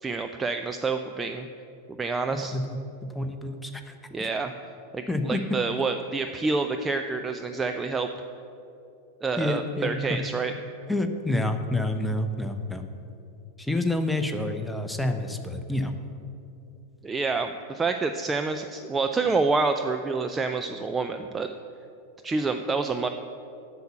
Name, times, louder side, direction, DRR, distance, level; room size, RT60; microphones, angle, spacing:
voice 1, 0.0-1.5 2.0-2.5 4.1-4.5 4.9-8.1 9.2-10.5 17.0-21.5 22.2-23.1, right 4 dB, 15° right, 6 dB, 0.4 m, -28 dB
voice 2, 2.3-3.9 5.1-5.4 9.4-10.2 10.9-12.8 13.6-15.9, left 1 dB, 5° left, 6 dB, 0.8 m, -28 dB
7.8 x 6.9 x 8.3 m, 2.8 s
figure-of-eight pair, 90°, 0 cm